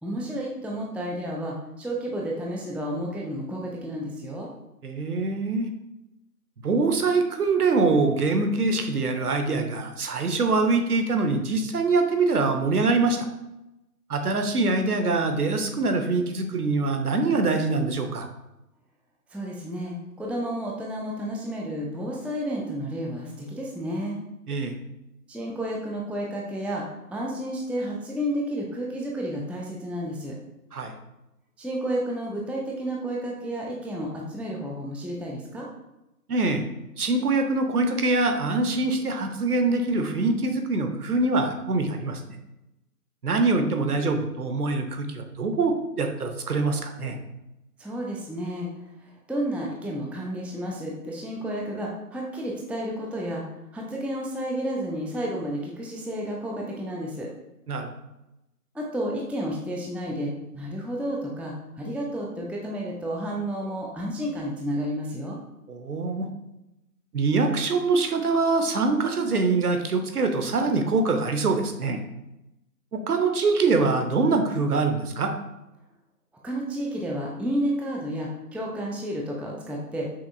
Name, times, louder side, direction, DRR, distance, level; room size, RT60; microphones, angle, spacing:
voice 1, 0.0-4.5 19.3-24.2 25.3-26.8 27.1-30.3 31.6-35.7 47.8-48.7 49.0-53.4 53.7-57.3 58.7-65.4 76.4-80.1, equal, 5° right, -2 dB, 0.3 m, -31 dB
voice 2, 4.8-5.7 6.6-13.3 14.1-18.3 24.5-24.7 30.7-30.9 36.3-36.6 37.0-42.2 43.2-47.2 57.7-57.9 65.7-66.3 67.1-72.0 72.9-75.3, right 3 dB, 65° right, 6 dB, 0.7 m, -24 dB
5.8 x 2.5 x 2.5 m, 0.93 s
figure-of-eight pair, 165°, 48 cm